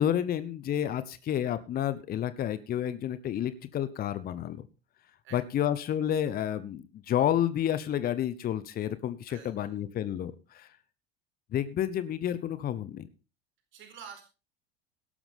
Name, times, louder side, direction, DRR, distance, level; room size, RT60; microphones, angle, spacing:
voice 1, 0.0-4.7 5.3-10.7 11.5-13.1, left 10 dB, 30° left, 15 dB, 1.1 m, -30 dB
voice 2, 9.3-9.8 13.7-14.2, right 7 dB, 40° right, 5 dB, 4.4 m, -48 dB
17.5 x 12.5 x 3.5 m, 0.31 s
figure-of-eight pair, 75°, 31 cm